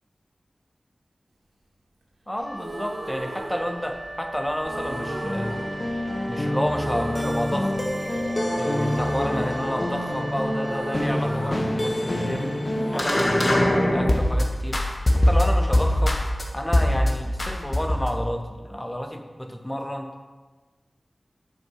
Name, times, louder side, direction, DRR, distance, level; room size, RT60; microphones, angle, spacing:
voice 1, 2.3-5.6 6.3-7.8 8.6-12.6 12.9-16.2 16.5-20.1, equal, 15° left, 4 dB, 0.9 m, -30 dB
Wind instrument woodwind instrument, 2.4-11.9, right 1 dB, 25° right, 1.0 m, -39 dB
sound 1, 2.5-4.2 4.6-6.4 6.7-8.3 8.6-12.3 12.6-14.7, right 2 dB, 80° right, 1.5 m, -37 dB
sound 2, 4.7-14.4 14.7-16.4 16.7-17.1 17.4-18.2, left 1 dB, 40° left, 1.1 m, -24 dB
7.9 x 4.5 x 6.4 m, 1.3 s
wide cardioid pair, 60°, 0 cm